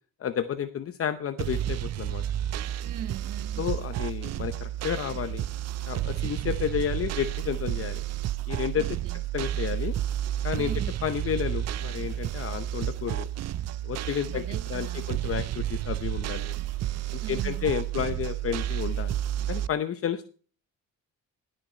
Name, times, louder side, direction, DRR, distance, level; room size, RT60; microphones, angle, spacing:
voice 1, 0.2-2.2 3.6-5.5 5.9-8.0 8.5-8.9 9.3-9.9 10.4-10.7 11.0-13.3 13.8-16.5 17.1-19.2 19.5-20.3, left 9 dB, 45° left, 0.8 m, -31 dB
sound 1, 1.4-19.7, right 12 dB, 55° right, 0.5 m, -31 dB
voice 2, 2.8-3.7 8.8-9.2 10.5-10.9 14.3-15.1 17.2-17.7, right 11 dB, 85° right, 1.2 m, -40 dB
16.5 x 6.7 x 4.4 m
cardioid pair, 120°, 31 cm